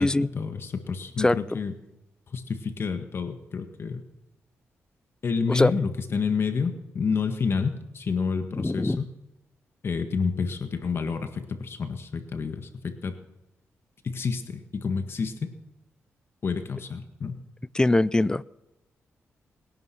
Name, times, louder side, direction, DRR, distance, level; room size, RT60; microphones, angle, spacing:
voice 1, 0.0-1.7 2.3-4.0 5.2-9.1 9.8-13.2 14.0-15.5 16.4-17.4, left 5 dB, 50° left, 7 dB, 1.7 m, -29 dB
voice 2, 8.6-9.0 17.7-18.4, left 2 dB, 15° left, 19 dB, 0.4 m, -22 dB
22.0 x 11.0 x 6.0 m, 0.97 s
cardioid pair, 90°, 5 cm